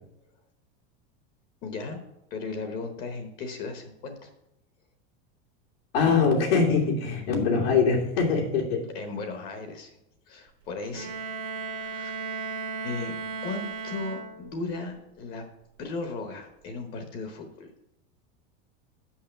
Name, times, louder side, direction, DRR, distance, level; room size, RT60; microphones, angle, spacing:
voice 1, 1.6-2.0 2.3-4.3 8.9-9.9 10.3-11.1 11.6-12.2 12.8-15.4 15.8-17.9, left 3 dB, 30° left, 6 dB, 0.9 m, -36 dB
voice 2, 5.9-8.9, left 5 dB, 90° left, -1 dB, 3.0 m, -23 dB
Bowed string instrument, 10.9-14.7, right 4 dB, 70° right, 1.5 m, -35 dB
6.4 x 5.7 x 7.1 m, 0.84 s
supercardioid pair, 180°, 29 cm